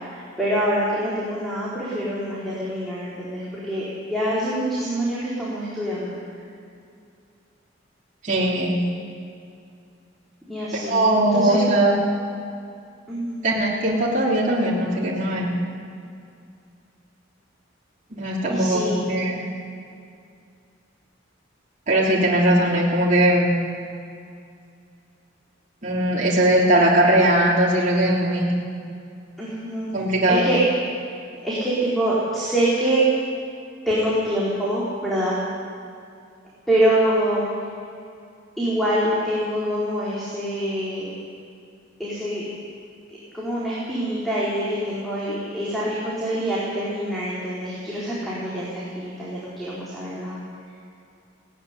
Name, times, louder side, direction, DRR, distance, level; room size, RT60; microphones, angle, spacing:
voice 1, 0.0-6.1 10.5-11.6 13.1-13.4 18.5-19.0 29.4-29.9 30.3-30.6 31.4-33.1 33.9-35.4 36.7-37.4 38.6-41.1 42.0-42.4 43.3-50.4, right 1 dB, ahead, -8 dB, 4.2 m, -25 dB
voice 2, 8.2-8.8 10.9-11.9 13.4-15.5 18.1-19.4 21.9-23.5 25.8-28.4 29.9-30.5, right 1 dB, 45° right, -6 dB, 3.4 m, -19 dB
18.0 x 15.0 x 9.8 m, 2.4 s
head